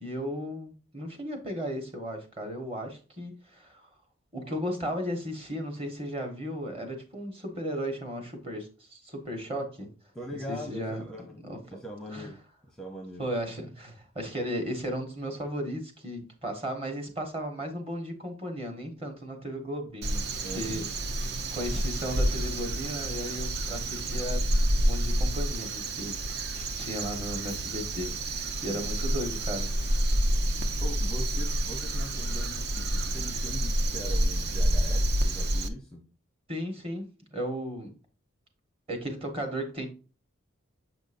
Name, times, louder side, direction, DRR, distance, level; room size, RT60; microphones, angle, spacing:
voice 1, 0.0-3.9 4.3-9.9 10.5-11.0 11.5-11.6 12.1-12.3 13.2-20.2 20.5-20.8 21.5-24.5 24.8-30.2 36.5-37.9 38.9-39.9, equal, 30° right, 4 dB, 1.3 m, -35 dB
voice 2, 10.1-11.4 11.7-13.3 20.4-20.9 28.7-28.9 30.8-36.1, equal, 5° left, 2 dB, 0.7 m, -41 dB
Crow, 20.0-35.7, right 1 dB, 50° right, 0.6 m, -28 dB
7.1 x 5.2 x 2.5 m, 0.35 s
head